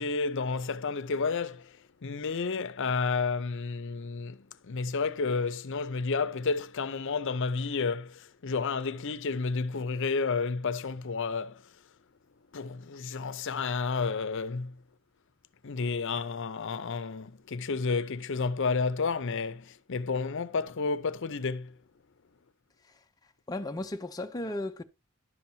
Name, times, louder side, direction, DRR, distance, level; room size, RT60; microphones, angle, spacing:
voice 1, 0.0-1.7 2.0-4.4 4.6-11.6 12.5-14.8 15.6-21.7, left 4 dB, 60° left, 0.6 m, -31 dB
voice 2, 23.5-24.8, left 1 dB, 20° left, 0.5 m, -35 dB
11.0 x 7.1 x 2.8 m
head